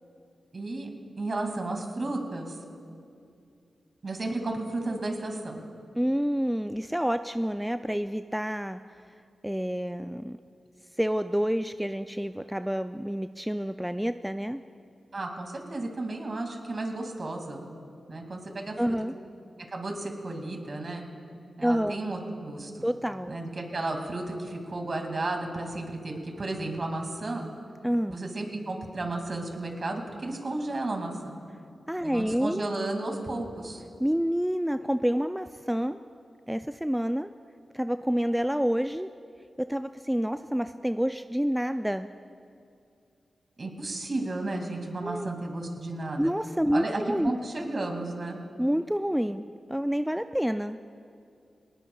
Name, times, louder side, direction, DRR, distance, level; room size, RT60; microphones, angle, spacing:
voice 1, 0.5-2.6 4.0-5.7 15.1-17.6 18.1-19.0 19.7-21.0 21.6-22.9 23.3-27.5 28.1-31.4 32.0-33.8 43.6-46.3 46.7-48.4, right 2 dB, 50° right, 3 dB, 2.3 m, -33 dB
voice 2, 6.0-8.8 9.4-10.4 11.0-14.6 18.8-19.1 21.6-22.0 22.8-23.4 27.8-28.2 31.9-32.6 34.0-36.0 36.5-37.3 37.7-39.1 39.6-42.1 45.0-45.3 46.2-47.3 48.6-50.8, equal, 5° right, 9 dB, 0.3 m, -28 dB
19.0 x 19.0 x 2.3 m, 2.5 s
cardioid pair, 55°, 0 cm